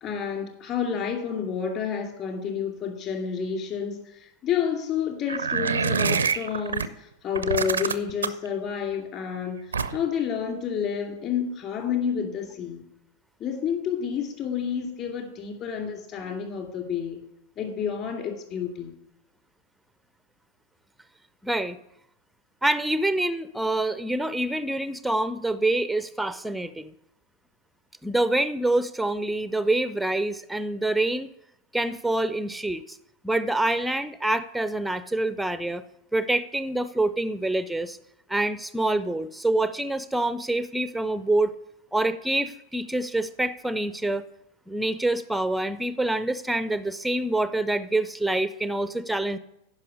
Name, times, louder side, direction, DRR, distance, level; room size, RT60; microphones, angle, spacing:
voice 1, 0.0-9.6 9.9-12.8 13.4-17.2 17.6-18.9, left 7 dB, 40° left, 2 dB, 2.4 m, -29 dB
sound 1, 5.3-6.9 7.3-8.5 9.7-10.2, right 6 dB, 75° right, 0.4 m, -25 dB
voice 2, 21.4-21.8 22.6-26.9 28.0-31.3 31.7-33.0 33.2-35.8 36.1-38.0 38.3-41.5 41.9-44.2 44.7-49.4, right 2 dB, ahead, 14 dB, 0.4 m, -26 dB
10.5 x 5.5 x 6.2 m, 0.80 s
figure-of-eight pair, 90°, 0 cm